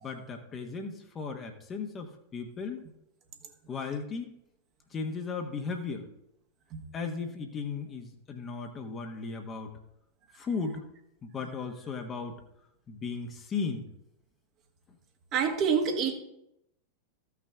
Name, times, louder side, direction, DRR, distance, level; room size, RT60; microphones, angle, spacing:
voice 1, 0.0-2.9 3.7-4.4 4.9-6.0 6.9-9.7 10.3-10.8 11.2-12.3 12.9-13.9, left 5 dB, 25° left, 1.2 m, -36 dB
voice 2, 15.3-16.1, right 6 dB, 35° right, 1.5 m, -26 dB
14.5 x 5.9 x 3.6 m
figure-of-eight pair, 90°, 0 cm